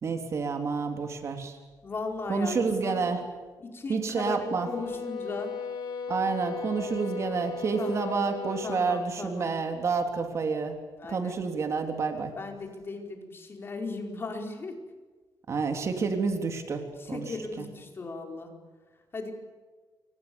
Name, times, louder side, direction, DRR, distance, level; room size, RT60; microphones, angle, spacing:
voice 1, 0.0-1.6 2.3-3.2 3.9-4.7 6.1-10.8 11.1-12.3 15.5-17.6, right 5 dB, 40° right, 5 dB, 3.5 m, -29 dB
voice 2, 1.8-3.1 3.6-5.5 7.8-8.2 8.6-9.5 11.0-11.4 12.4-14.8 17.0-18.6 19.1-19.3, left 3 dB, 30° left, 3 dB, 4.9 m, -37 dB
sound 1, 4.4-9.2, left 5 dB, 75° left, 7.6 m, -37 dB
30.0 x 25.5 x 7.2 m, 1.4 s
cardioid pair, 155°, 8 cm